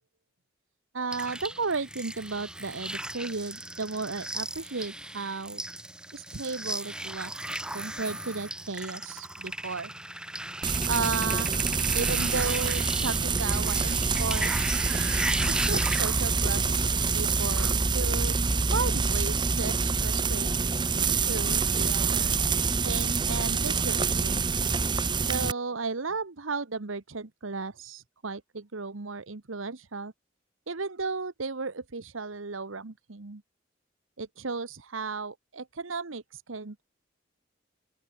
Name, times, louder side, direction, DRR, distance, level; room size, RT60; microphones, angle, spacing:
voice 1, 0.9-5.6 6.1-9.9 10.9-11.6 11.9-14.7 15.5-16.9 17.1-18.4 18.7-20.7 21.0-22.4 22.8-24.4 25.2-30.1 30.7-33.4 34.2-36.8, right 4 dB, 90° right, 1.2 m, -34 dB
sound 1, 1.1-17.7, right 1 dB, 5° right, 1.2 m, -36 dB
Frying (food), 10.6-25.5, right 4 dB, 25° right, 1.0 m, -26 dB
open air
head